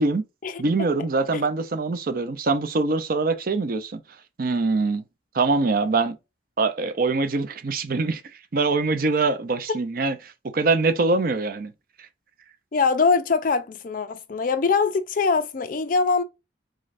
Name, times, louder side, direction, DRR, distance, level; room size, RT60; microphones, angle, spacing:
voice 1, 0.6-4.0 4.4-5.0 5.3-6.2 6.6-8.2 8.5-11.7, right 3 dB, 50° right, 0.5 m, -23 dB
voice 2, 12.7-16.2, left 4 dB, 45° left, 0.4 m, -22 dB
3.7 x 3.2 x 2.4 m
head